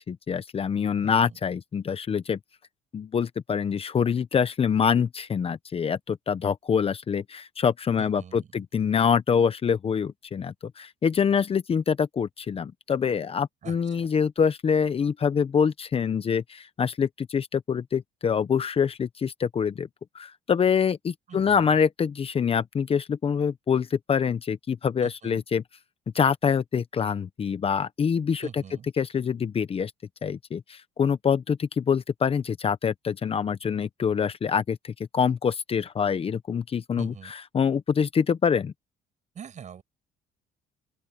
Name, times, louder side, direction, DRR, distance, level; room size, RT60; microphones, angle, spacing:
voice 1, 0.0-2.4 2.9-19.9 20.1-25.6 26.1-28.6 29.0-29.9 30.2-37.1 37.5-38.7, left 7 dB, 35° left, 0.9 m, -25 dB
voice 2, 1.0-1.4 8.0-8.6 13.6-14.2 21.3-21.8 25.0-25.4 28.4-28.9 37.0-37.3 39.3-39.8, right 8 dB, 45° right, 6.7 m, -44 dB
open air
cardioid pair, 110°, 17 cm